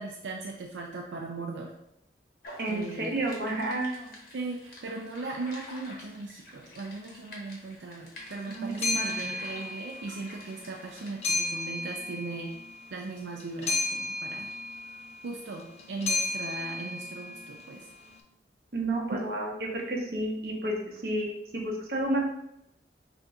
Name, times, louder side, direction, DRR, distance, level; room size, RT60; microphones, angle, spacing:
voice 1, 0.0-1.7 2.7-3.2 4.3-12.5 12.9-14.5 15.2-17.9 19.1-19.2, right 3 dB, 85° right, 0 dB, 0.4 m, -38 dB
sound 1, 2.4-11.1, left 1 dB, 50° left, 1.1 m, -49 dB
voice 2, 2.6-4.2 8.5-9.2 18.7-22.2, right 2 dB, 55° right, -2 dB, 0.9 m, -31 dB
sound 2, 8.2-18.1, left 2 dB, 35° left, 0.4 m, -34 dB
6.3 x 2.6 x 2.4 m, 0.82 s
head